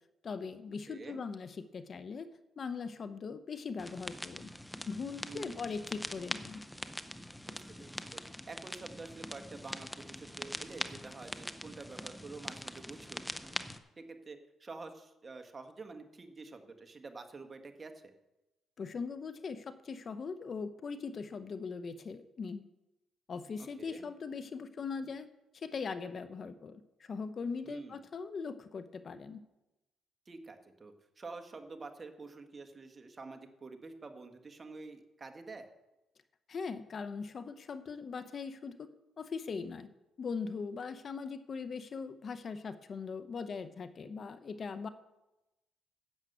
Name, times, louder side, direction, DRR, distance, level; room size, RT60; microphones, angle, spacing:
voice 1, 0.2-4.5 4.9-6.6 18.8-22.6 23.3-25.3 25.5-29.4 36.5-38.9 39.2-39.9 40.2-44.9, left 5 dB, 45° left, 11 dB, 0.8 m, -40 dB
voice 2, 0.9-1.2 5.2-5.7 7.4-8.2 8.5-18.1 23.6-24.1 27.6-28.0 30.2-35.7, right 3 dB, 30° right, 7 dB, 1.5 m, -48 dB
sound 1, 3.8-13.8, left 1 dB, 5° left, 0.8 m, -43 dB
11.0 x 7.4 x 8.1 m, 0.98 s
cardioid pair, 90°, 0 cm